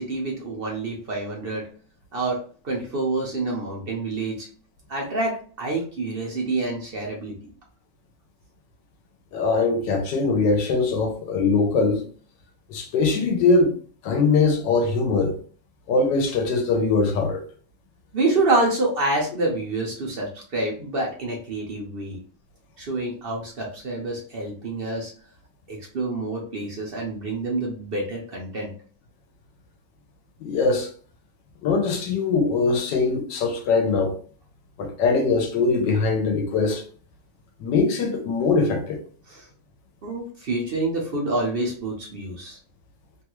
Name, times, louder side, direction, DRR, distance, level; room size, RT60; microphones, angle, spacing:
voice 1, 0.0-1.7 2.1-4.5 4.9-7.5 18.1-22.2 22.8-25.1 25.7-28.7 39.3-39.5 40.0-42.6, right 2 dB, 60° right, 0.6 m, -27 dB
voice 2, 9.3-12.0 12.7-13.7 14.0-15.4 15.9-17.4 30.4-30.9 31.6-34.2 34.8-36.8 37.6-39.0, left 4 dB, 80° left, 1.3 m, -22 dB
3.3 x 2.3 x 2.9 m
omnidirectional pair, 1.9 m